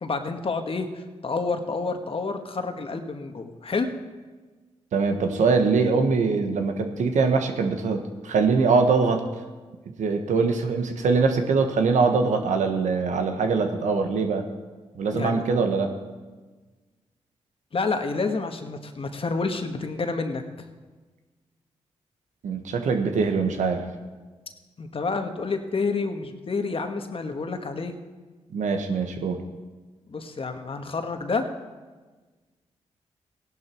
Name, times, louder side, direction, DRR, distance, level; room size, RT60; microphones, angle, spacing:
voice 1, 0.0-3.9 15.1-15.4 17.7-20.4 24.8-27.9 30.1-31.4, left 4 dB, 50° left, 6 dB, 1.6 m, -29 dB
voice 2, 4.9-9.2 10.0-14.4 14.9-15.9 22.4-23.8 28.5-29.4, right 4 dB, 80° right, 5 dB, 1.4 m, -23 dB
16.0 x 11.0 x 4.6 m, 1.3 s
supercardioid pair, 50°, 12 cm